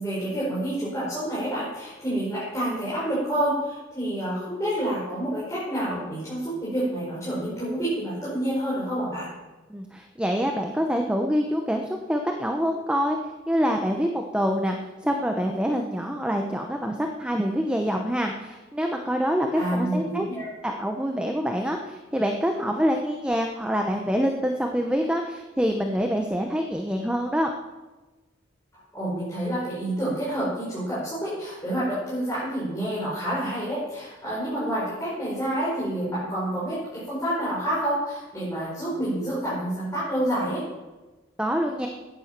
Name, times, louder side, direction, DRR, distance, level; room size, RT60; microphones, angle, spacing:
voice 1, 0.0-9.3 19.5-20.5 28.7-40.6, right 1 dB, 15° left, -10 dB, 5.3 m, -28 dB
voice 2, 9.7-13.2 13.5-14.8 15.0-20.3 20.6-27.5 41.4-41.9, equal, 5° right, 3 dB, 0.8 m, -26 dB
14.5 x 10.5 x 6.0 m, 1.2 s
head